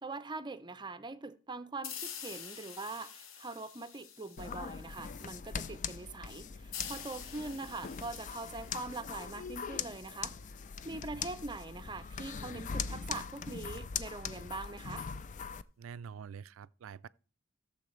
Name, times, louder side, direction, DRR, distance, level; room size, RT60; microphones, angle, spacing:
voice 1, 0.0-10.4 10.8-15.1, right 3 dB, 25° right, 0.6 m, -43 dB
sound 1, 1.8-5.2 6.7-10.2, left 7 dB, 80° left, 1.0 m, -47 dB
sound 2, 4.4-15.6, left 6 dB, 40° left, 0.4 m, -41 dB
voice 2, 15.8-17.1, right 7 dB, 85° right, 0.4 m, -46 dB
15.5 x 7.1 x 3.2 m
head